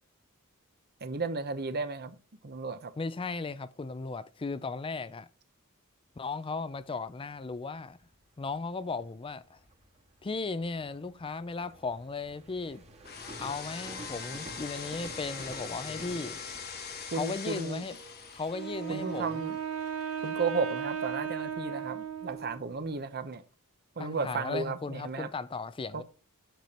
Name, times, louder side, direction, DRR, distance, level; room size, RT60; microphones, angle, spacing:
voice 1, 1.0-2.2 2.4-2.9 17.1-17.8 18.9-19.6 20.2-23.4 24.0-25.3 25.9-26.0, right 4 dB, 45° right, 0.9 m, -34 dB
voice 2, 3.0-5.3 6.2-8.0 8.4-9.6 10.2-12.8 13.4-16.4 17.1-18.0 18.3-19.5 24.0-26.0, left 4 dB, 25° left, 0.4 m, -36 dB
sound 1, 6.6-23.0, right 1 dB, 30° right, 1.8 m, -51 dB
sound 2, 13.0-21.2, left 6 dB, 45° left, 1.1 m, -43 dB
Wind instrument woodwind instrument, 18.5-22.7, right 8 dB, 85° right, 1.3 m, -36 dB
9.2 x 6.8 x 4.3 m
head